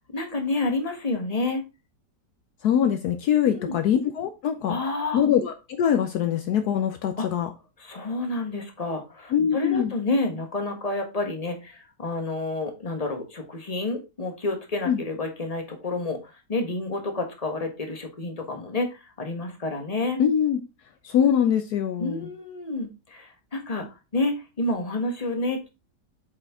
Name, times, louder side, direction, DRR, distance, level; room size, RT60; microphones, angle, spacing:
voice 1, 0.0-1.6 3.4-3.8 4.7-5.2 7.2-7.3 7.8-20.2 22.0-23.9 24.1-25.7, left 2 dB, 25° left, 1.2 m, -29 dB
voice 2, 2.6-4.8 5.1-7.5 9.3-9.9 14.9-15.0 20.2-20.6 21.0-22.3, left 9 dB, 70° left, 1.1 m, -23 dB
7.9 x 4.4 x 3.5 m
omnidirectional pair, 1.9 m